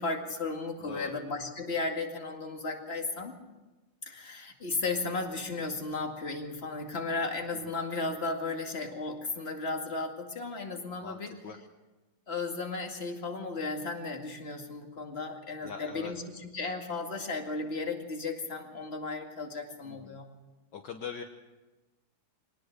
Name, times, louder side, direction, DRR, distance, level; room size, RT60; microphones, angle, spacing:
voice 1, 0.0-3.4 4.1-11.4 12.3-16.2 16.5-20.3, left 3 dB, 30° left, 2 dB, 2.3 m, -35 dB
voice 2, 0.8-1.2 11.0-11.6 15.6-16.1 19.8-20.2 20.7-21.2, left 6 dB, 60° left, 4 dB, 1.6 m, -42 dB
23.5 x 19.0 x 6.6 m, 1.2 s
omnidirectional pair, 2.3 m